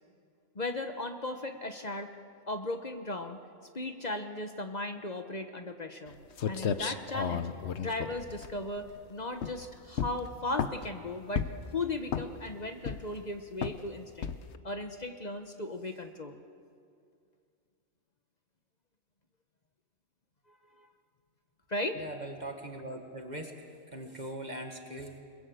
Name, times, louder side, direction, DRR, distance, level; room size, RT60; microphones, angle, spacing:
voice 1, 0.5-2.1 2.5-3.4 3.7-6.2 6.5-7.5 7.8-11.4 11.7-14.3 14.6-16.4 20.7-20.9 21.7-22.0, left 2 dB, 40° left, 6 dB, 1.2 m, -36 dB
sound 1, 6.1-6.2 6.4-9.0 9.4-9.6 10.0-10.9 11.4-11.7 12.1-12.5 12.8-13.2 13.6-13.8 14.2-14.6, left 7 dB, 70° left, 1.1 m, -33 dB
voice 2, 22.0-23.5 23.9-25.2, right 1 dB, 40° right, 3 dB, 1.9 m, -40 dB
28.5 x 21.5 x 7.8 m, 2.4 s
omnidirectional pair, 1.2 m